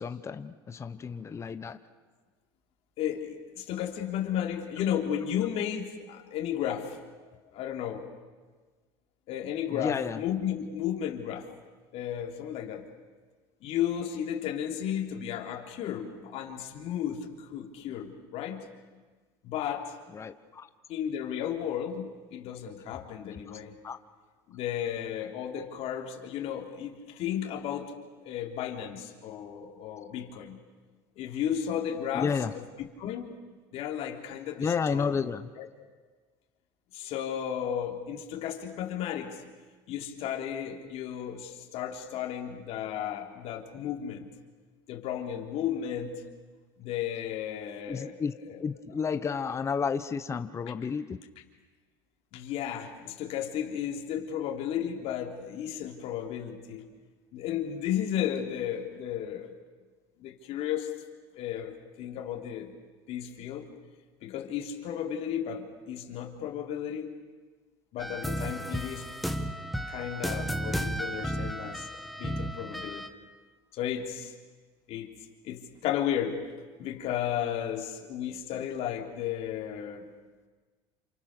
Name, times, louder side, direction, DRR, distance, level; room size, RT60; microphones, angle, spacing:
voice 1, 0.0-1.8 9.7-10.2 20.1-20.7 23.8-24.0 32.1-32.5 34.6-35.5 47.9-48.3 48.6-51.2, left 6 dB, 25° left, 11 dB, 1.0 m, -31 dB
voice 2, 3.0-7.0 7.5-8.1 9.3-11.5 11.9-12.8 13.6-18.6 19.4-19.9 20.9-23.7 24.5-27.9 28.2-30.6 31.2-33.3 33.7-35.2 35.5-35.7 36.9-39.4 39.9-44.3 44.9-46.2 46.8-48.6 52.3-56.9 57.3-59.5 60.2-60.9 61.3-62.7 63.1-63.7 64.2-67.1 67.9-69.1 69.4-73.1 73.7-74.3 74.9-75.1 75.4-76.5 76.8-80.0, left 9 dB, 55° left, 2 dB, 3.4 m, -34 dB
sound 1, 68.0-73.1, equal, ahead, 1.4 m, -33 dB
28.5 x 26.5 x 6.8 m, 1.4 s
supercardioid pair, 120°, 12 cm